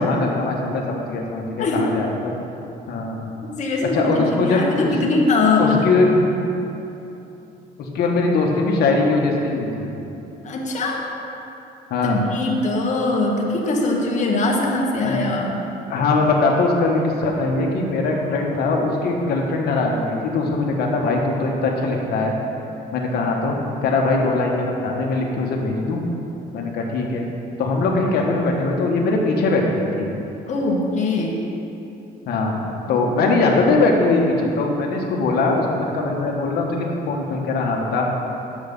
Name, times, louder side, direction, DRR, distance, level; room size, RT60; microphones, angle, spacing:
voice 1, 0.0-2.3 2.9-3.2 3.9-4.9 5.6-6.1 7.8-9.8 11.9-12.2 15.0-15.3 15.9-22.3 22.9-23.6 23.8-26.0 26.5-27.2 27.6-30.1 32.3-32.5 32.9-38.1, left 3 dB, 70° left, 0 dB, 1.3 m, -21 dB
voice 2, 3.6-5.9 10.4-11.0 12.0-15.6 30.5-31.4, left 3 dB, 45° left, -1 dB, 1.6 m, -21 dB
7.9 x 7.4 x 5.4 m, 2.9 s
cardioid pair, 110°, 17 cm